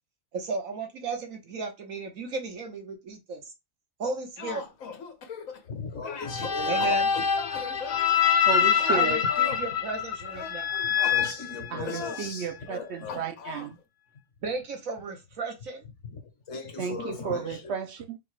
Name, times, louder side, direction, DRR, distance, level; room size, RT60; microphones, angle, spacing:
voice 1, 0.3-3.4 4.0-4.6 6.7-7.1 8.9-10.8 14.4-15.8, right 3 dB, 85° right, 1.5 m, -34 dB
sound 1, 4.0-5.7 6.0-8.0 8.7-9.7 10.3-11.2 11.8-12.2 13.1-13.7, left 5 dB, 85° left, 1.3 m, -38 dB
voice 2, 5.7-7.0 7.9-8.0 11.0-13.2 16.0-16.2 16.5-17.7, left 4 dB, 65° left, 1.4 m, -38 dB
sound 2, 6.2-12.2, left 7 dB, 45° left, 0.7 m, -25 dB
voice 3, 8.5-9.2 11.7-13.7 16.8-18.2, right 7 dB, 65° right, 0.8 m, -33 dB
4.6 x 2.3 x 4.8 m
omnidirectional pair, 1.4 m